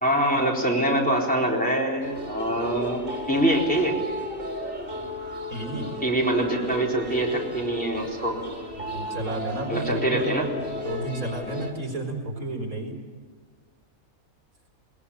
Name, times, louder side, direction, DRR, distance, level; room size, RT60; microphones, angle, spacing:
voice 1, 0.0-3.0 3.3-4.0 6.0-8.4 9.7-10.5, right 1 dB, 5° left, -3 dB, 4.2 m, -24 dB
sound 1, 2.0-11.7, left 1 dB, 40° right, 3.9 m, -35 dB
voice 2, 5.5-5.9 8.8-13.0, right 1 dB, 75° right, 2 dB, 4.7 m, -32 dB
22.0 x 21.5 x 8.6 m, 1.5 s
omnidirectional pair, 1.5 m